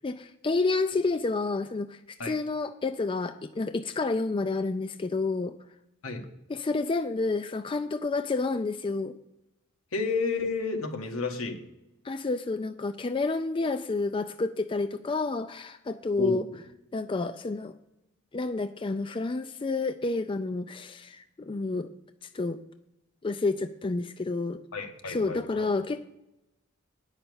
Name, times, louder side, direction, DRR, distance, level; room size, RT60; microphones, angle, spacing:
voice 1, 0.0-5.5 6.5-9.2 12.0-16.4 16.9-17.7 18.3-21.9 22.3-22.6 23.2-24.6 25.0-26.1, left 3 dB, 25° left, 9 dB, 0.4 m, -29 dB
voice 2, 9.9-11.6 16.2-16.4 24.7-25.7, left 4 dB, 90° left, 3 dB, 1.7 m, -31 dB
9.7 x 5.8 x 6.9 m, 0.89 s
head